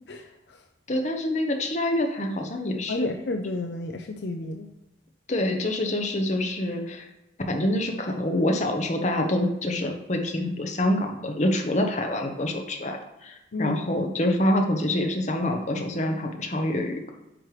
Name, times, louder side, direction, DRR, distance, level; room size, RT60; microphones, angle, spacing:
voice 1, 0.1-0.6 2.9-4.7 13.5-13.8, left 2 dB, 70° left, 4 dB, 0.6 m, -31 dB
voice 2, 0.9-3.1 5.3-7.1 7.5-17.1, left 1 dB, 40° left, 3 dB, 1.0 m, -26 dB
8.8 x 3.2 x 4.8 m, 0.94 s
head